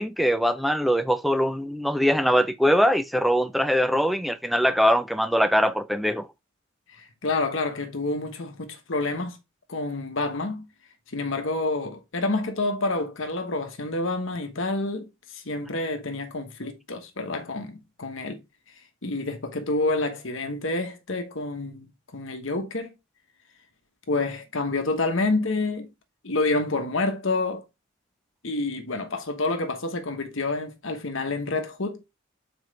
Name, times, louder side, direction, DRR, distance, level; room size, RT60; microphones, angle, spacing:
voice 1, 0.0-6.3, equal, ahead, 0.4 m, -22 dB
voice 2, 6.9-9.4 9.7-10.7 11.1-18.4 19.0-22.9 24.1-25.9 26.2-27.6 28.4-32.0, left 2 dB, 65° left, 1.2 m, -28 dB
7.2 x 4.6 x 3.2 m
head